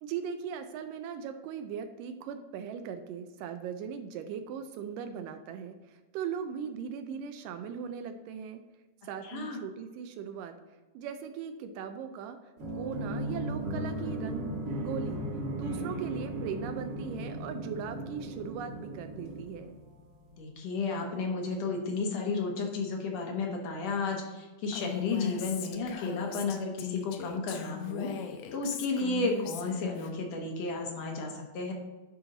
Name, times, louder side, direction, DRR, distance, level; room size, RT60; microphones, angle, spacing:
voice 1, 0.0-8.6 9.0-10.6 10.9-12.4 12.7-15.3 15.6-19.8, right 7 dB, 80° right, 7 dB, 2.1 m, -39 dB
voice 2, 9.2-9.6 20.3-28.1 28.5-31.7, left 3 dB, 65° left, 2 dB, 1.9 m, -33 dB
sound 1, 12.6-20.1, right 1 dB, 45° right, 1.5 m, -36 dB
Female speech woman speaking, 24.7-30.1, left 8 dB, 80° left, 2.2 m, -39 dB
10.5 x 4.3 x 3.8 m, 1.2 s
omnidirectional pair, 3.9 m